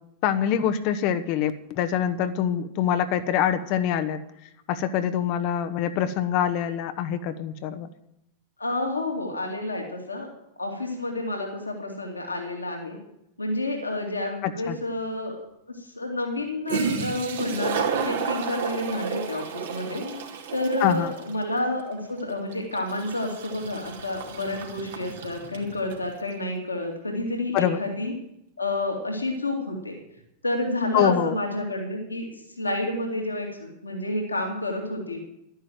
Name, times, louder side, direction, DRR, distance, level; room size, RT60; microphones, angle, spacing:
voice 1, 0.2-4.2 4.7-7.9 14.4-14.8 20.8-21.1 27.5-27.8 30.9-31.4, left 9 dB, 45° left, 10 dB, 1.0 m, -25 dB
voice 2, 8.6-10.3 10.6-13.0 13.4-15.4 15.8-20.0 20.5-28.1 28.6-30.0 30.4-32.3 32.6-35.2, left 1 dB, 80° left, 2 dB, 2.6 m, -29 dB
Toilet flush, 14.7-14.8 16.4-16.5 16.7-26.1, right 6 dB, 60° right, 2.3 m, -32 dB
12.5 x 10.5 x 7.6 m, 0.81 s
figure-of-eight pair, 90°, 0 cm